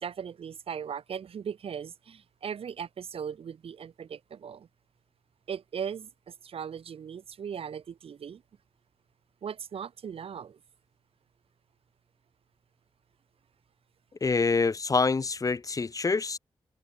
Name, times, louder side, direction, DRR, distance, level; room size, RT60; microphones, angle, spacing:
voice 1, 0.0-4.7 5.5-8.4 9.4-10.6, right 7 dB, 80° right, 1.6 m, -38 dB
voice 2, 14.2-16.4, left 4 dB, 35° left, 1.0 m, -26 dB
wide cardioid pair, 100°, 10 cm